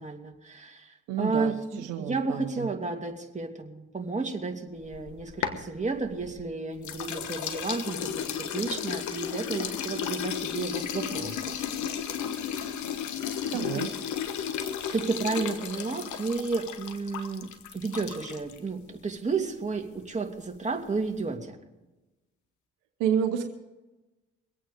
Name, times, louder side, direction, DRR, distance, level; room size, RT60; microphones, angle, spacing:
voice 1, 0.0-11.4 13.5-13.8 14.9-21.6, right 4 dB, 25° right, 2 dB, 2.7 m, -32 dB
voice 2, 1.1-2.7 13.5-13.9 23.0-23.5, right 8 dB, 80° right, 7 dB, 1.0 m, -29 dB
sound 1, 4.8-6.4 6.8-18.6, left 8 dB, 70° left, 1.3 m, -34 dB
23.0 x 8.8 x 5.1 m, 1.1 s
hypercardioid pair, 50°, 30 cm